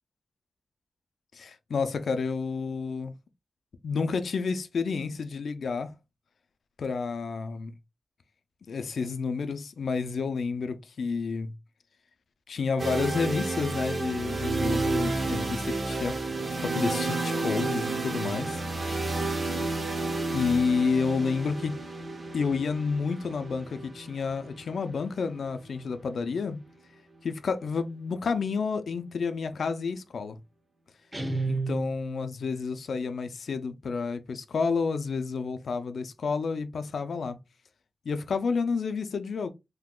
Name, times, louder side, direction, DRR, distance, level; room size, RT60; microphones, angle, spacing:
voice 1, 1.3-3.1 3.8-5.9 6.8-7.7 8.7-11.5 12.5-16.2 16.6-19.0 20.3-21.8 22.3-26.6 27.2-30.4 31.5-37.4 38.1-39.5, left 5 dB, 80° left, 0.4 m, -30 dB
sound 1, 12.8-26.7, right 3 dB, 45° right, 0.7 m, -31 dB
Guitar, 31.1-32.4, right 3 dB, 20° right, 1.2 m, -32 dB
3.6 x 2.8 x 2.2 m
wide cardioid pair, 110°, 0 cm